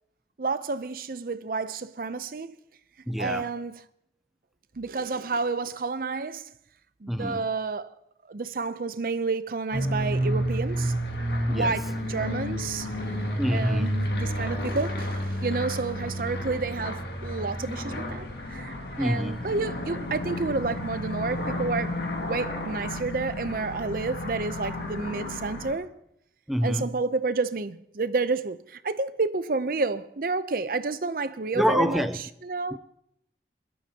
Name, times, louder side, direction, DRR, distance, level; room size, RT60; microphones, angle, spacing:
voice 1, 0.4-2.6 3.2-3.8 4.8-6.5 7.0-7.9 8.3-10.9 11.5-12.9 13.3-22.0 22.2-25.9 26.6-32.1 32.4-32.8, right 3 dB, 50° right, 0.6 m, -30 dB
voice 2, 3.1-3.5 7.1-7.5 11.5-11.8 13.4-14.1 19.0-19.5 26.5-27.0 31.5-32.2 32.7-32.8, equal, ahead, 0.4 m, -27 dB
sound 1, 9.7-25.7, equal, 65° left, 2.0 m, -31 dB
21.0 x 12.5 x 2.9 m
head